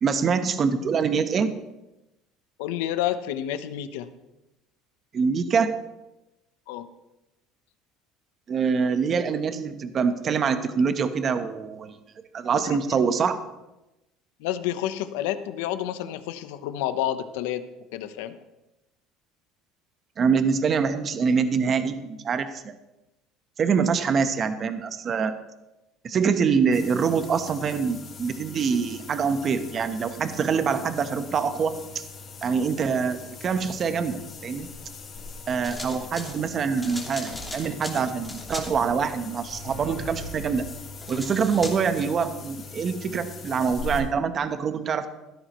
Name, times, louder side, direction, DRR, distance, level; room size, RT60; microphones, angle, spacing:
voice 1, 0.0-1.5 5.1-5.8 8.5-12.0 12.3-13.4 20.2-22.7 23.6-25.3 26.0-32.0 32.4-34.7 35.5-40.7 41.1-45.1, right 6 dB, 35° right, 9 dB, 1.0 m, -25 dB
voice 2, 2.6-4.1 6.7-6.9 12.6-13.0 14.4-18.4, left 11 dB, 90° left, 11 dB, 0.9 m, -30 dB
sound 1, 26.7-44.0, left 3 dB, 35° left, 3.7 m, -41 dB
sound 2, 35.6-36.4 36.8-38.7 40.9-42.1, left 1 dB, 5° left, 2.7 m, -37 dB
16.0 x 12.5 x 3.1 m, 0.96 s
cardioid pair, 130°, 0 cm